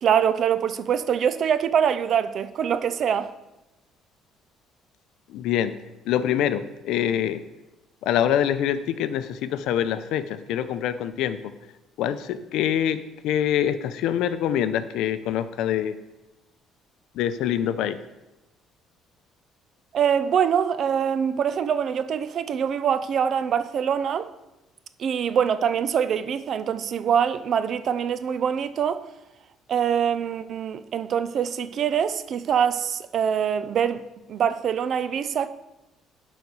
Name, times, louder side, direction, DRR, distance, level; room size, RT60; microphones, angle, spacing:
voice 1, 0.0-3.3 19.9-24.3 25.0-29.0 29.7-34.0 34.3-35.5, right 8 dB, 50° right, 0.5 m, -24 dB
voice 2, 5.3-5.7 6.1-7.4 8.0-11.5 12.0-13.0 13.2-16.0 17.1-18.0, left 10 dB, 80° left, 0.5 m, -25 dB
11.5 x 4.1 x 4.7 m
cardioid pair, 125°, 0 cm